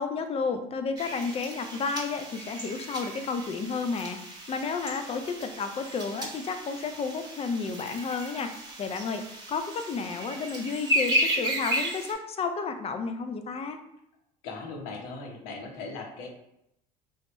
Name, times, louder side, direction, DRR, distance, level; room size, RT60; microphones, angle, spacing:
voice 1, 0.0-13.8, left 4 dB, 30° left, 8 dB, 0.4 m, -32 dB
sound 1, 1.0-12.1, right 1 dB, 20° right, 0.9 m, -34 dB
voice 2, 14.4-16.3, left 3 dB, 70° left, 2 dB, 0.8 m, -38 dB
3.4 x 2.0 x 3.0 m, 0.80 s
hypercardioid pair, 70°, 21 cm